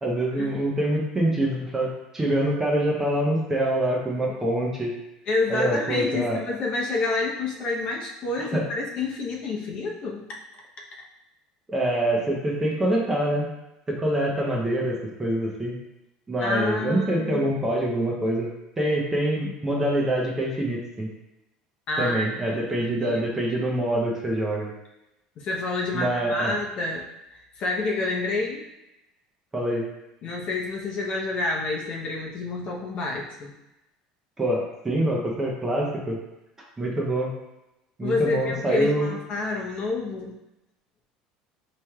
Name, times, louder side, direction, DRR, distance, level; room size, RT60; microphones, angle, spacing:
voice 1, 0.0-4.9 5.5-6.4 8.4-8.6 11.7-13.5 13.9-15.8 16.3-18.5 18.8-21.1 22.0-24.7 25.9-26.5 29.5-29.9 34.4-36.2 36.8-37.3 38.0-39.1, right 1 dB, 15° right, -2 dB, 0.8 m, -25 dB
voice 2, 5.3-10.3 16.4-17.6 21.9-23.2 25.4-27.0 27.6-28.7 30.2-33.5 38.0-40.3, left 3 dB, 50° left, -2 dB, 0.8 m, -28 dB
4.2 x 3.2 x 2.3 m, 0.92 s
supercardioid pair, 120°, 2 cm